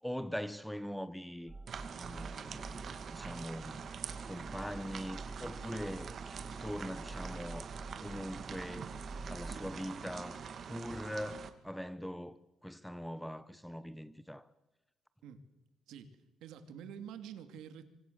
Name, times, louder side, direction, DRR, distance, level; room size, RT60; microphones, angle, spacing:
voice 1, 0.0-1.5 2.0-3.9 4.2-6.1 6.6-7.7 8.0-8.9 9.2-14.5, equal, ahead, 1.1 m, -42 dB
sound 1, 1.5-9.7, right 3 dB, 20° right, 1.4 m, -48 dB
sound 2, 1.7-11.5, right 6 dB, 55° right, 2.3 m, -45 dB
voice 2, 15.9-17.9, right 8 dB, 90° right, 2.7 m, -48 dB
26.0 x 25.0 x 7.0 m
cardioid pair, 90°, 0 cm